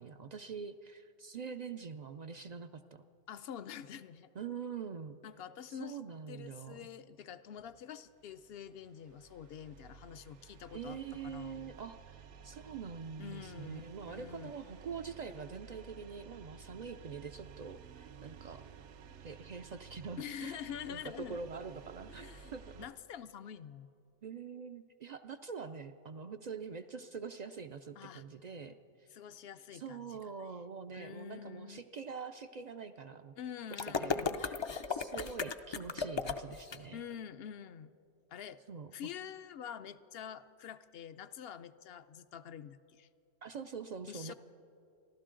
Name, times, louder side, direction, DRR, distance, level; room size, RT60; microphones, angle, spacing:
voice 1, 0.0-3.0 4.4-5.2 5.7-6.9 10.7-18.6 19.2-20.6 20.9-22.9 24.2-29.1 29.7-33.3 33.7-34.6 34.9-37.0 38.7-38.9 43.4-44.3, right 5 dB, 60° right, 9 dB, 0.4 m, -45 dB
voice 2, 3.3-4.3 5.2-11.7 13.2-14.5 20.2-21.4 22.1-22.5 22.8-23.9 28.0-28.2 29.1-30.2 30.9-31.8 33.4-34.4 36.9-37.9 38.3-38.6 38.9-43.1 44.1-44.3, left 9 dB, 65° left, 13 dB, 0.7 m, -46 dB
sound 1, 8.0-22.9, right 7 dB, 80° right, 1.0 m, -54 dB
sound 2, 33.7-36.8, left 5 dB, 45° left, 0.3 m, -35 dB
28.5 x 12.0 x 3.8 m, 2.6 s
omnidirectional pair, 1.2 m